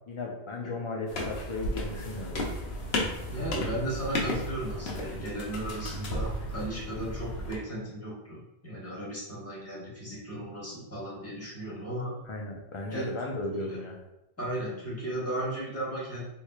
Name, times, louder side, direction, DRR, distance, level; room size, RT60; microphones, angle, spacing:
voice 1, 0.1-2.5 12.2-13.9, left 2 dB, 35° left, -1 dB, 0.6 m, -35 dB
sound 1, 1.1-7.6, left 1 dB, 75° left, 0.9 m, -34 dB
voice 2, 3.3-12.1 12.9-13.1 13.7-13.8 14.4-16.2, right 1 dB, 15° left, -7 dB, 1.2 m, -35 dB
3.5 x 3.1 x 2.3 m, 0.88 s
omnidirectional pair, 1.1 m